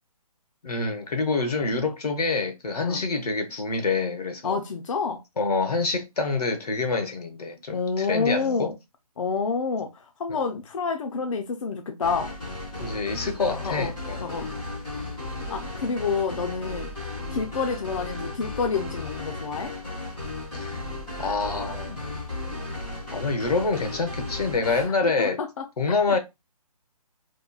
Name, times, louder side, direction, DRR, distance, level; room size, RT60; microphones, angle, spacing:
voice 1, 0.6-4.6 5.4-8.7 10.3-10.5 12.8-14.3 20.5-20.8 21.2-22.0 23.1-25.4 25.8-26.2, left 3 dB, 90° left, 0.8 m, -26 dB
voice 2, 4.4-5.2 7.7-8.8 9.2-9.9 10.2-12.3 13.6-13.9 14.2-14.5 15.5-16.9 17.3-19.7 24.6-25.6, left 5 dB, 55° left, 0.5 m, -28 dB
sound 1, 12.0-24.9, left 2 dB, ahead, 0.4 m, -35 dB
2.9 x 2.2 x 2.2 m
hypercardioid pair, 165°, 19 cm